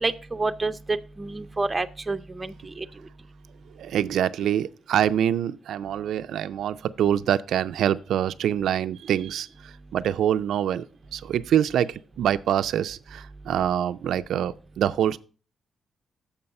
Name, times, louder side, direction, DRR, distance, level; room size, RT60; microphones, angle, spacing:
voice 1, 0.0-2.9, right 3 dB, 15° right, 0.5 m, -29 dB
voice 2, 3.8-10.8 11.1-15.2, right 10 dB, 80° right, 0.3 m, -25 dB
7.0 x 5.4 x 5.7 m
cardioid pair, 140°, 0 cm